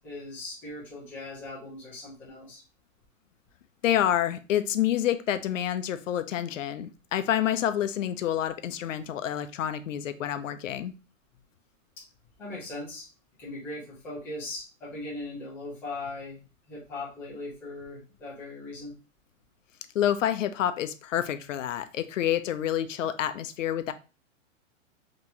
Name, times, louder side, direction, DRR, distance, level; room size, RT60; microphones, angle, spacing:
voice 1, 0.0-2.6 12.4-13.1 13.4-18.9, left 2 dB, 5° left, 0.5 m, -39 dB
voice 2, 3.8-10.9 19.9-23.9, left 11 dB, 75° left, 0.5 m, -28 dB
3.8 x 2.9 x 2.6 m
hypercardioid pair, 160°, 38 cm